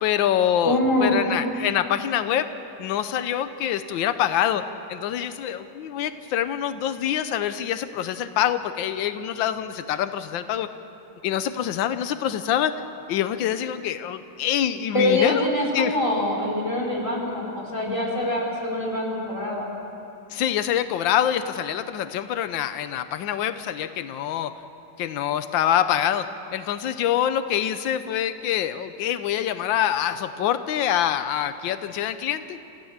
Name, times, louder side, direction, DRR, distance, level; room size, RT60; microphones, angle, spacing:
voice 1, 0.0-2.5 2.8-10.7 11.2-12.7 13.1-16.0 20.3-24.5 25.0-32.6, left 10 dB, 90° left, 11 dB, 1.4 m, -25 dB
voice 2, 0.6-1.2 14.9-19.7, left 1 dB, 15° left, -2 dB, 4.3 m, -24 dB
28.0 x 15.5 x 7.3 m, 2.8 s
omnidirectional pair, 2.0 m